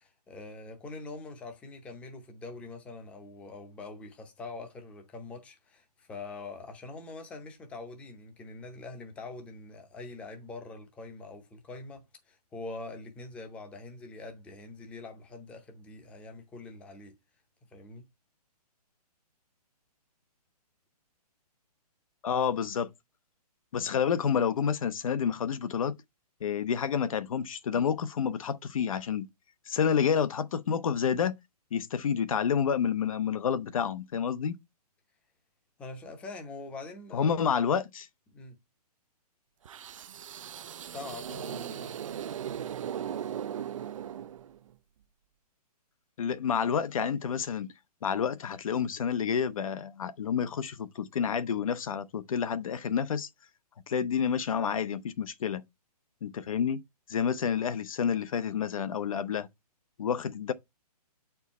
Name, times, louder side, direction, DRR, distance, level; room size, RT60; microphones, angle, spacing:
voice 1, 0.0-17.2 17.7-18.1 35.8-37.3 38.3-38.5 40.9-42.0, left 3 dB, 5° left, 0.7 m, -44 dB
voice 2, 22.2-22.9 23.7-25.9 26.4-29.3 29.7-31.3 31.7-34.5 37.1-38.1 46.2-47.7 48.0-53.3 53.9-55.6 56.2-56.8 57.1-59.5 60.0-60.5, left 7 dB, 55° left, 0.7 m, -29 dB
sound 1, 39.7-44.7, right 9 dB, 55° right, 0.4 m, -38 dB
8.2 x 4.5 x 4.1 m
hypercardioid pair, 165°, 20 cm